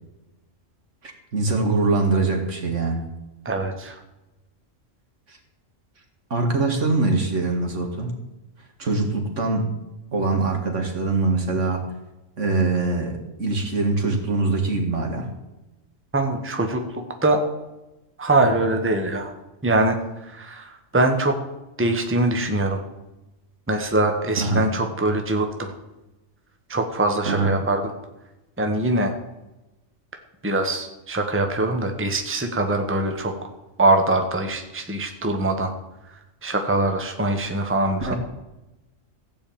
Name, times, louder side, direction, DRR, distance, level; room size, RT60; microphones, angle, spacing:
voice 1, 1.0-3.1 5.3-5.4 6.3-8.1 8.8-9.7 10.1-11.8 12.4-15.3 24.4-24.6 27.3-27.5 38.1-38.2, right 3 dB, 70° right, 3 dB, 2.3 m, -23 dB
voice 2, 3.4-4.0 16.1-17.4 18.2-19.3 19.6-21.4 21.8-22.8 23.7-25.7 26.7-27.9 28.6-29.2 30.4-33.3 33.8-35.7 36.4-38.1, right 2 dB, 10° right, 5 dB, 1.2 m, -23 dB
15.0 x 5.5 x 8.6 m, 1.0 s
omnidirectional pair, 1.3 m